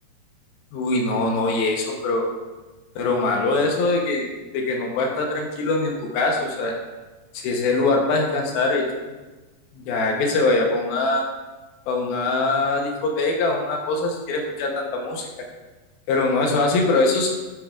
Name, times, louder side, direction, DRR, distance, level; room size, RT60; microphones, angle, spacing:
voice 1, 0.7-2.3 3.0-4.3 4.5-6.7 7.3-8.9 9.7-11.2 11.9-15.3 16.1-17.3, left 3 dB, 70° left, 1 dB, 2.4 m, -22 dB
9.3 x 8.7 x 2.4 m, 1.2 s
omnidirectional pair, 5.1 m